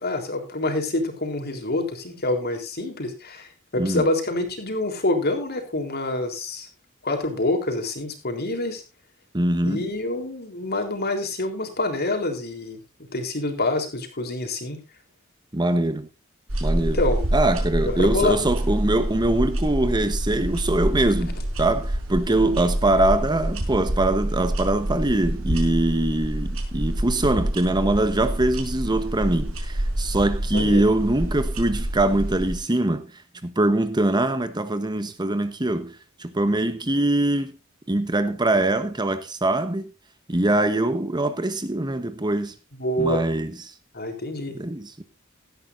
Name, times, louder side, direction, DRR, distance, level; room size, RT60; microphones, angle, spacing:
voice 1, 0.0-6.7 7.0-8.8 9.6-12.8 13.1-14.8 16.8-17.3 17.8-18.4 21.4-21.5 30.5-30.8 42.7-43.2 43.9-44.6, left 2 dB, 50° left, 3.7 m, -26 dB
voice 2, 9.3-9.8 15.5-16.1 16.6-17.0 17.3-33.0 33.4-35.9 36.2-37.5 37.9-39.9 40.3-42.5 43.0-43.5 44.6-45.0, right 1 dB, 20° right, 1.1 m, -23 dB
sound 1, 16.5-32.5, right 1 dB, 80° right, 5.1 m, -27 dB
17.0 x 13.5 x 2.7 m
head